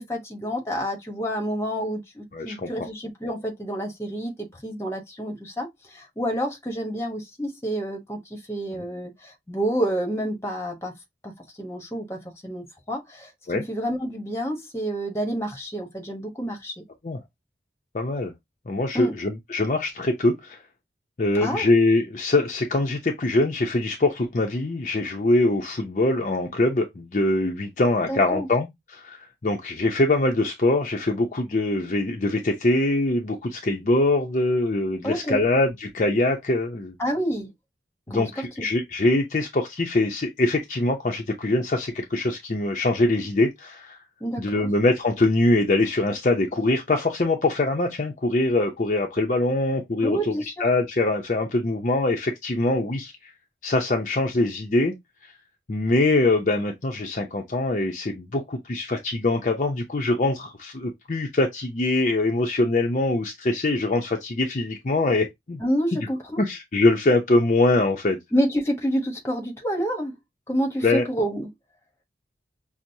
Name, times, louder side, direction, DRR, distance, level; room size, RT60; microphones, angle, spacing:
voice 1, 0.0-10.9 11.2-11.3 11.6-16.7 18.9-19.1 21.3-21.7 28.1-28.5 35.0-35.4 37.0-37.5 38.1-38.7 44.2-44.7 50.0-50.6 65.6-66.4 68.3-70.2 70.5-71.5, equal, 15° left, 0.9 m, -28 dB
voice 2, 2.3-2.7 8.7-8.8 13.5-13.6 17.0-17.2 17.9-18.3 18.7-20.6 21.2-36.9 38.1-44.0 44.4-50.3 50.6-53.3 53.6-54.9 55.7-65.6 66.4-68.2 70.8-71.0, left 2 dB, 40° left, 0.5 m, -23 dB
5.9 x 2.0 x 2.6 m
head